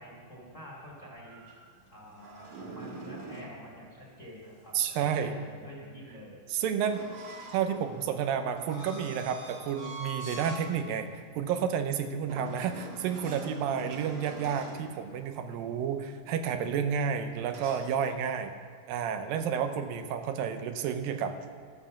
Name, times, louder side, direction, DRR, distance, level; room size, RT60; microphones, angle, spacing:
voice 1, 0.0-1.4 1.9-6.4, equal, 25° left, -3 dB, 2.1 m, -48 dB
sound 1, 1.2-3.6 6.8-10.7 11.1-11.3 12.3-14.9 17.4-17.8, right 3 dB, 55° right, 2.4 m, -44 dB
voice 2, 4.7-5.3 6.5-7.0 7.5-11.1 11.4-18.5 18.9-21.4, right 7 dB, 80° right, 8 dB, 2.5 m, -31 dB
13.0 x 7.3 x 7.0 m, 2.1 s
omnidirectional pair, 4.1 m